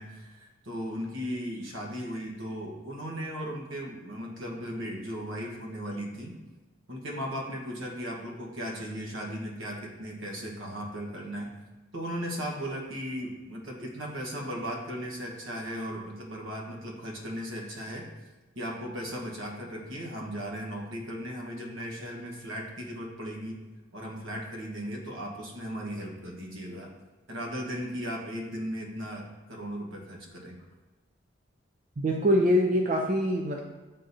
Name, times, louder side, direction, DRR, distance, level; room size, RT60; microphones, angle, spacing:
voice 1, 0.0-6.3 6.9-11.5 11.9-18.0 18.5-23.6 23.9-26.9 27.3-30.6, equal, 75° right, -1 dB, 1.2 m, -37 dB
voice 2, 32.0-33.6, equal, 40° right, 1 dB, 0.4 m, -24 dB
9.5 x 3.7 x 2.7 m, 1.2 s
head